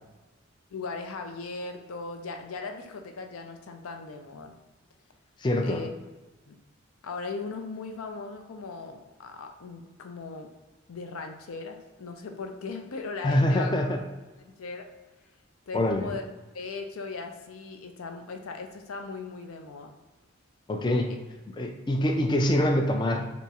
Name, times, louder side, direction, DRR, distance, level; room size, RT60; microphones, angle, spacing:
voice 1, 0.7-4.5 5.6-5.9 6.5-6.6 7.0-10.5 10.9-13.7 14.5-14.8 15.7-16.2 16.5-19.9 22.0-22.1, left 4 dB, 85° left, 5 dB, 0.5 m, -38 dB
voice 2, 5.4-5.8 13.2-14.0 15.7-16.1 20.7-21.1 21.6-23.3, left 1 dB, 20° left, 4 dB, 0.3 m, -25 dB
3.5 x 3.0 x 2.9 m, 1.2 s
head